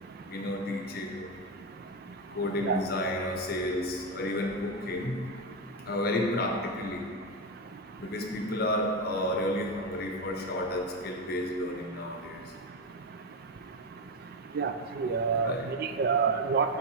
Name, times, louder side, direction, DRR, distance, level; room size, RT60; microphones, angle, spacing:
voice 1, 0.3-1.3 2.3-5.2 5.9-7.1 8.0-12.4 15.3-15.7, left 1 dB, 55° left, 2 dB, 0.7 m, -31 dB
voice 2, 14.5-16.8, right 5 dB, 55° right, 9 dB, 0.3 m, -27 dB
7.0 x 3.5 x 4.7 m, 2.2 s
head